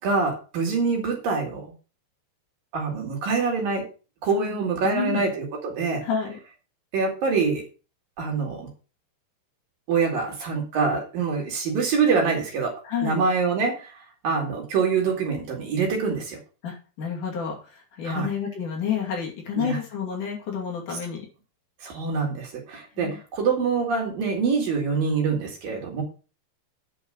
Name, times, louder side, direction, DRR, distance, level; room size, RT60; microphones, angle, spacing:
voice 1, 0.0-1.7 2.7-3.9 4.2-6.1 6.9-7.7 8.2-8.7 9.9-12.8 13.0-13.9 14.2-16.4 18.0-18.3 19.6-19.8 20.9-21.0 21.8-26.0, right 5 dB, 60° right, 1 dB, 4.1 m, -25 dB
voice 2, 4.8-5.3 6.0-6.4 12.8-13.2 16.6-21.2 23.0-23.2, left 7 dB, 55° left, -1 dB, 3.8 m, -29 dB
9.0 x 5.8 x 6.3 m, 0.33 s
omnidirectional pair, 4.6 m